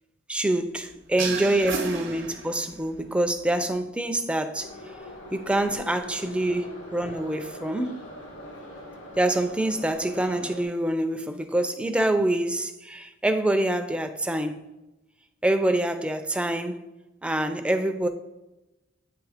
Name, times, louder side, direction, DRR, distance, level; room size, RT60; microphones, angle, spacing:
voice 1, 0.3-4.7 5.3-8.0 9.1-14.6 15.4-16.8 17.2-18.1, right 1 dB, 5° right, 0.5 m, -26 dB
sound 1, 1.2-2.9, right 3 dB, 70° right, 0.9 m, -32 dB
Subway metro underground, 4.5-10.6, equal, 90° left, 1.4 m, -42 dB
8.8 x 3.3 x 4.9 m
head